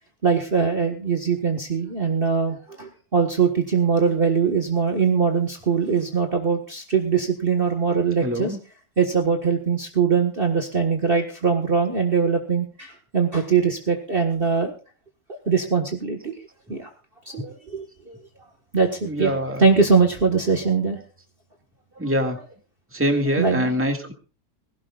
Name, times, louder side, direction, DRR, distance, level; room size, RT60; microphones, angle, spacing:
voice 1, 0.2-8.6 9.0-14.7 15.5-16.3 16.7-16.9 17.3-18.2 18.7-21.0 22.3-22.4 23.4-23.7, right 5 dB, 35° right, 3 dB, 1.8 m, -22 dB
voice 2, 8.2-8.6 19.0-19.6 22.0-22.4 22.9-24.1, equal, 5° right, 4 dB, 2.1 m, -24 dB
20.5 x 17.0 x 2.5 m, 0.34 s
omnidirectional pair, 1.8 m